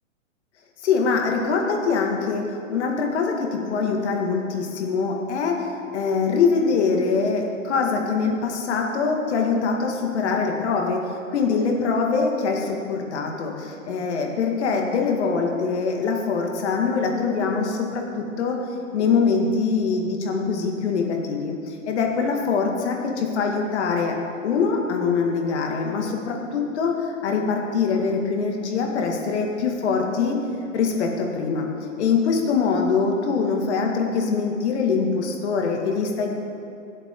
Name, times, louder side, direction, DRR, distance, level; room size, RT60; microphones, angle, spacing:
voice 1, 0.8-5.7 5.9-18.6 18.9-24.2 24.4-30.4 30.7-31.7 32.0-36.3, left 5 dB, 55° left, 1 dB, 2.2 m, -23 dB
23.5 x 8.2 x 3.8 m, 2.7 s
hypercardioid pair, 135°, 40 cm